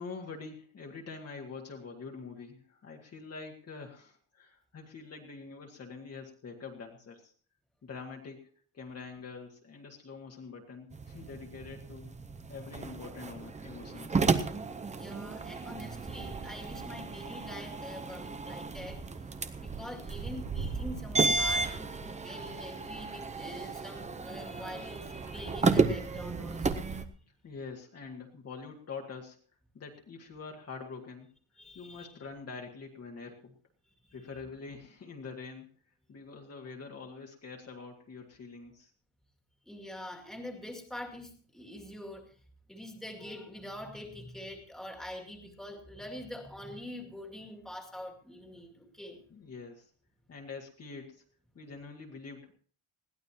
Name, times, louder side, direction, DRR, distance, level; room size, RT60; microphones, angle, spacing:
voice 1, 0.0-7.3 7.8-8.5 8.7-12.1 12.5-14.3 27.4-29.4 29.7-31.3 31.8-33.5 34.1-35.7 36.1-38.9 49.3-49.9 50.3-51.2 51.6-52.5, left 4 dB, 30° left, 1 dB, 1.8 m, -45 dB
sound 1, 10.9-27.0, right 4 dB, 15° right, 0.6 m, -33 dB
voice 2, 14.9-19.0 19.6-26.9 31.6-32.1 34.0-34.1 39.6-42.3 42.7-49.2, left 1 dB, ahead, 1 dB, 2.2 m, -45 dB
21.0 x 15.5 x 2.9 m, 0.43 s
cardioid pair, 175°, 49 cm